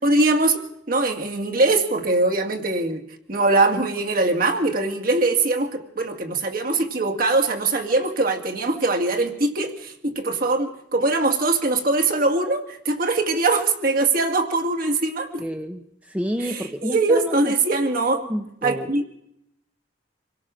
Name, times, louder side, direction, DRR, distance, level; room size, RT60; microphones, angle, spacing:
voice 1, 0.0-3.0 3.3-15.4 16.4-18.2 18.6-19.2, right 2 dB, 50° right, 3 dB, 2.2 m, -22 dB
voice 2, 15.4-17.5 18.2-18.9, equal, 10° right, 6 dB, 0.9 m, -29 dB
26.0 x 17.5 x 6.4 m, 0.78 s
head